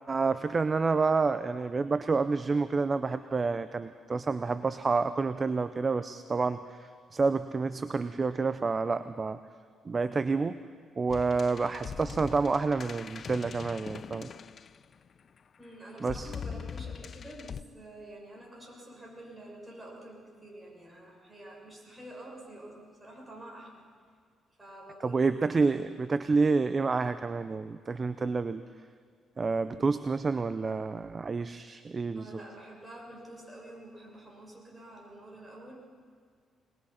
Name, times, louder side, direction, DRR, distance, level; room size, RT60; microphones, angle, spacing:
voice 1, 0.1-9.4 9.8-10.6 11.0-14.3 16.0-16.3 25.0-28.6 29.4-32.4, right 4 dB, 35° right, 12 dB, 0.6 m, -29 dB
sound 1, 11.1-15.2 16.0-17.6, left 7 dB, 50° left, 0.4 m, -42 dB
voice 2, 15.6-23.9 24.6-25.7 32.1-35.8, right 1 dB, 15° right, -2 dB, 6.3 m, -48 dB
23.0 x 20.0 x 5.8 m, 2.1 s
cardioid pair, 90°, 0 cm